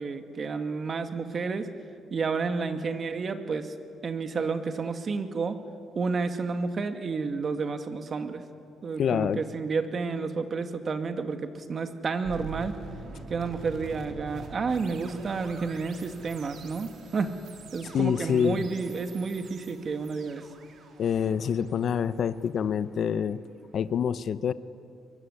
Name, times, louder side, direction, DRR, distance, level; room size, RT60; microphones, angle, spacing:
voice 1, 0.0-1.7 2.1-3.7 4.0-5.6 6.0-8.4 8.8-12.8 13.3-17.4 17.7-20.5, right 4 dB, 45° right, 7 dB, 2.2 m, -31 dB
voice 2, 9.0-9.4 17.9-18.7 21.0-23.4 23.7-24.5, left 8 dB, 60° left, 14 dB, 0.8 m, -26 dB
sound 1, 12.2-23.3, right 4 dB, 65° right, 3.7 m, -45 dB
23.0 x 23.0 x 10.0 m, 2.4 s
cardioid pair, 90°, 0 cm